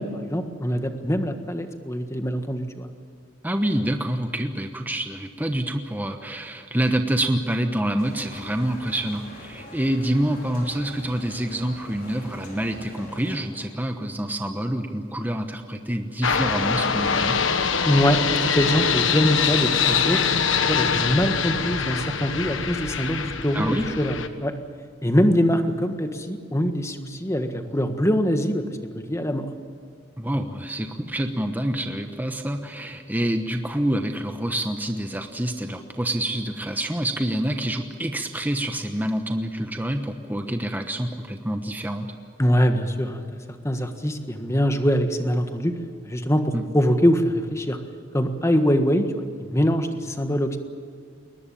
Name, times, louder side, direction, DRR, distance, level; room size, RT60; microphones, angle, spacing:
voice 1, 0.0-2.9 17.9-20.2 20.7-24.5 25.0-28.8 29.1-29.5 42.4-43.2 43.6-45.7 46.0-47.8 48.1-49.0 49.5-50.6, equal, 15° left, 6 dB, 1.6 m, -23 dB
voice 2, 3.4-17.4 23.5-23.9 30.2-42.1 46.5-46.6, right 1 dB, 10° right, 5 dB, 1.1 m, -27 dB
sound 1, 8.0-13.4, left 1 dB, 45° left, 4.9 m, -43 dB
sound 2, 16.2-24.3, left 6 dB, 75° left, 1.4 m, -23 dB
22.0 x 19.5 x 8.6 m, 2.3 s
head